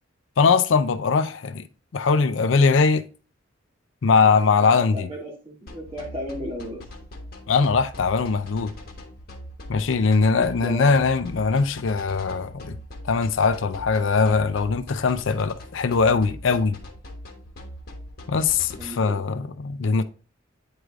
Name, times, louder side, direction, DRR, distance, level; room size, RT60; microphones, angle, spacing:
voice 1, 0.4-1.7 1.9-3.0 4.0-5.1 7.5-8.7 9.7-12.8 13.0-16.8 18.3-20.0, left 4 dB, 70° left, 0.5 m, -21 dB
voice 2, 4.7-6.8 10.3-11.0 18.8-19.6, equal, 30° right, 2.4 m, -35 dB
sound 1, 5.7-18.9, left 1 dB, 50° left, 1.3 m, -40 dB
9.0 x 4.8 x 2.4 m
head